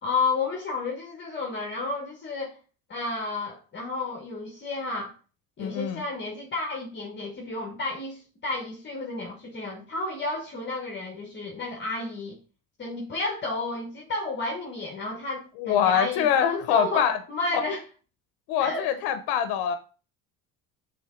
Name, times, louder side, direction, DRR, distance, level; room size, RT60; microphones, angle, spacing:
voice 1, 0.0-2.6 2.9-5.1 5.6-12.4 12.8-17.8 18.6-18.9, left 3 dB, 30° left, 1.2 m, -31 dB
voice 2, 5.6-6.0 15.6-17.2 17.5-17.6 18.5-19.8, left 9 dB, 90° left, 0.9 m, -24 dB
6.9 x 4.0 x 3.8 m
cardioid pair, 130°, 38 cm